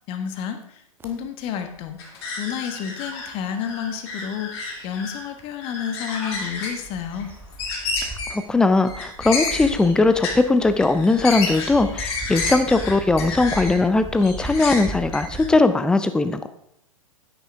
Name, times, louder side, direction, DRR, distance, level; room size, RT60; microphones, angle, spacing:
voice 1, 0.1-0.6 1.0-2.0 2.4-7.3, left 8 dB, 30° left, 7 dB, 1.3 m, -30 dB
sound 1, 1.0-1.1 1.6-1.9 2.2-3.7 4.3-4.4 6.1-15.5, right 1 dB, 10° right, 1.2 m, -38 dB
sound 2, 2.0-3.3 3.6-5.3 5.6-6.8 7.1-7.2 7.5-8.4 8.8-10.4 10.7-13.8 14.1-15.5, left 3 dB, 45° left, 2.5 m, -31 dB
voice 2, 8.0-16.5, left 3 dB, 5° left, 10 dB, 0.5 m, -19 dB
9.8 x 9.6 x 3.5 m, 0.74 s
figure-of-eight pair, 105°, 18 cm